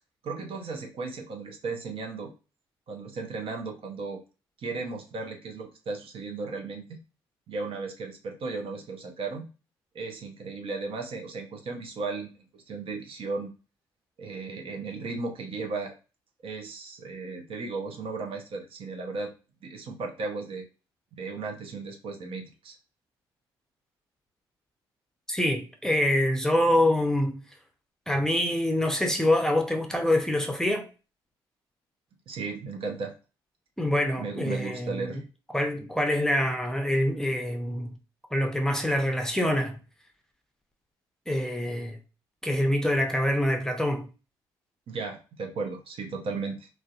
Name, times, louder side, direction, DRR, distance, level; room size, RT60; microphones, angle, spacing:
voice 1, 0.2-2.3 2.9-4.2 4.6-7.0 7.5-9.5 9.9-13.5 14.2-15.9 16.4-19.3 19.6-20.7 21.1-22.8 32.3-33.2 34.2-35.2 44.9-46.7, right 4 dB, 55° right, 0.6 m, -35 dB
voice 2, 25.3-27.4 28.1-30.9 33.8-35.2 35.5-37.9 38.3-39.8 41.3-42.0 42.4-44.1, left 1 dB, 5° left, 0.6 m, -25 dB
2.5 x 2.1 x 2.3 m
hypercardioid pair, 50°, 12 cm